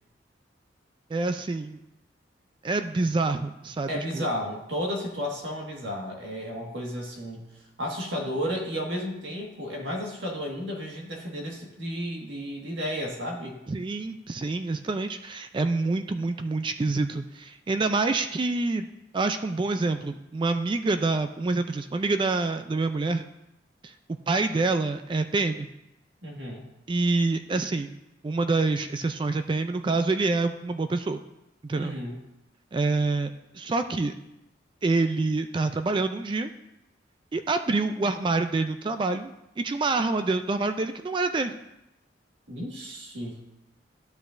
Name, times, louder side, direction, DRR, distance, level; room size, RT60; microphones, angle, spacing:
voice 1, 1.1-1.8 2.6-4.3 13.7-18.9 19.1-23.3 23.8-23.9 24.3-25.7 26.9-27.9 28.2-31.2 31.6-32.0 32.7-33.3 33.5-34.1 34.8-36.5 37.3-41.5, right 3 dB, 25° right, 8 dB, 0.3 m, -26 dB
voice 2, 3.9-7.5 7.8-13.6 26.2-26.6 31.7-32.2 42.5-43.4, equal, 80° right, 0 dB, 1.7 m, -33 dB
12.0 x 8.1 x 2.5 m, 0.89 s
head